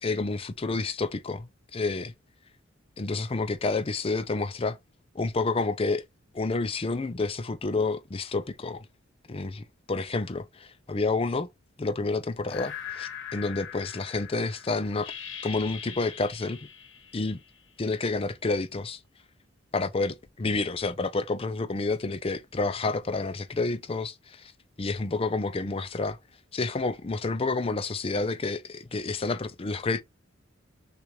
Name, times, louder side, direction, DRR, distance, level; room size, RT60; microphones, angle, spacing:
voice 1, 0.0-2.1 3.0-4.8 5.1-6.0 6.3-8.9 9.3-11.5 11.8-15.1 15.4-16.6 17.1-17.4 17.8-19.0 19.7-24.5 24.8-26.2 26.5-30.0, left 3 dB, 30° left, 0.5 m, -29 dB
sound 1, 12.5-17.9, left 8 dB, 70° left, 1.0 m, -41 dB
6.4 x 2.5 x 3.0 m
head